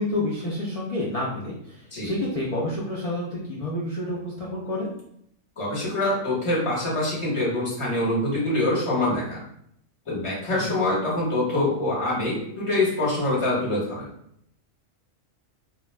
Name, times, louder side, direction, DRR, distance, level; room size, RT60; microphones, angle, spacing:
voice 1, 0.0-4.9 10.5-10.8, left 1 dB, 65° left, -7 dB, 0.3 m, -29 dB
voice 2, 5.6-9.4 10.1-14.1, left 1 dB, 25° left, -5 dB, 0.9 m, -25 dB
2.3 x 2.2 x 3.1 m, 0.70 s
omnidirectional pair, 1.4 m